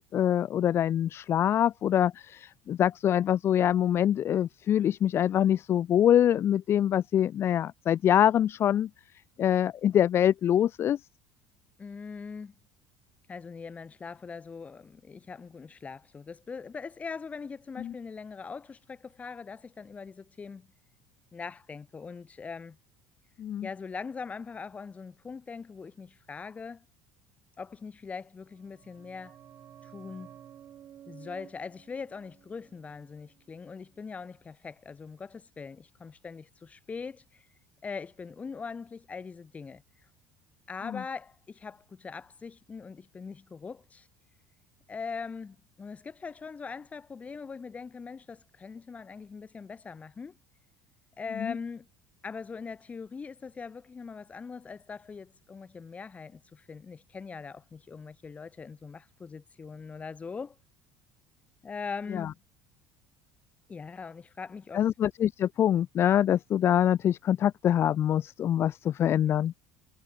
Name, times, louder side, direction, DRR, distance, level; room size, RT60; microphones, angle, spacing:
voice 1, 0.1-8.9 9.4-11.0 17.8-17.9 23.4-23.7 51.4-51.5 62.1-62.3 64.7-69.5, left 10 dB, 40° left, 1.1 m, -24 dB
voice 2, 11.8-12.5 13.3-20.7 21.3-22.8 23.6-26.8 27.6-29.4 29.8-30.4 31.1-37.5 37.8-39.8 40.7-44.1 44.9-50.4 51.2-51.9 52.2-60.6 61.6-62.4 63.7-64.9, left 5 dB, 25° left, 3.9 m, -41 dB
sound 1, 28.5-33.8 34.1-34.2, right 10 dB, 45° right, 4.5 m, -53 dB
cardioid pair, 120°, 6 cm